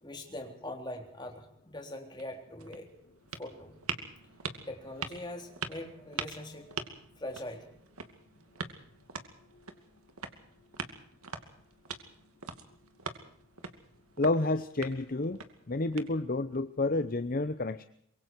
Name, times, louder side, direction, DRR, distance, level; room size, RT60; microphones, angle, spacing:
voice 1, 0.0-2.9 3.4-3.8 4.7-6.8 7.2-7.7, left 1 dB, 20° left, 3 dB, 3.7 m, -42 dB
sound 1, 2.2-16.6, right 5 dB, 85° right, 2.5 m, -44 dB
voice 2, 14.2-15.4 15.7-17.8, left 2 dB, 40° left, 12 dB, 0.7 m, -30 dB
25.0 x 23.0 x 4.7 m, 0.67 s
head